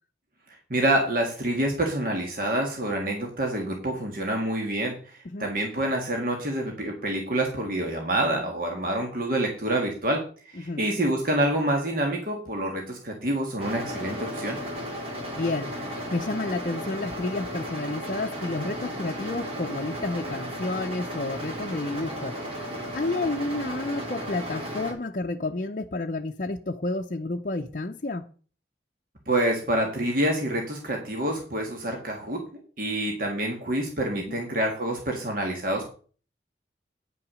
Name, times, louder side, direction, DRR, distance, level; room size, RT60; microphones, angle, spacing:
voice 1, 0.7-10.2 10.5-14.6 29.3-35.9, right 1 dB, 50° right, 1.8 m, -27 dB
sound 1, 13.6-24.9, equal, 30° right, 2.3 m, -35 dB
voice 2, 15.4-15.8 16.1-22.5 22.9-28.2 34.1-34.4, left 2 dB, 45° left, 0.6 m, -30 dB
9.5 x 5.9 x 6.2 m
head